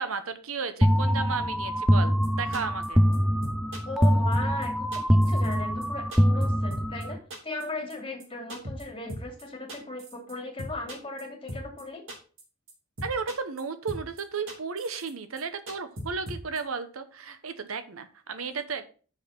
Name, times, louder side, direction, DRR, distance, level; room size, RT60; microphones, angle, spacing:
voice 1, 0.0-3.0 13.0-18.8, right 5 dB, 90° right, 10 dB, 0.9 m, -34 dB
sound 1, 0.8-7.2, equal, ahead, 0.4 m, -24 dB
sound 2, 2.2-2.3 2.5-2.9 3.1-3.2 3.4-4.1 4.3-4.7 4.9-5.6 5.8-7.0 7.3-7.6 7.9-8.0 8.2-8.3 8.5-8.8 9.1-9.4 9.7-10.3 10.6-11.2 11.5-11.8 12.1-12.4 12.7-12.8 13.0-13.6 13.9-14.2 14.5-15.1 15.4-15.5 15.7-16.6, equal, 65° right, 3.2 m, -38 dB
voice 2, 3.8-12.0, left 2 dB, 25° left, 1 dB, 2.7 m, -37 dB
6.2 x 5.6 x 5.9 m, 0.39 s
head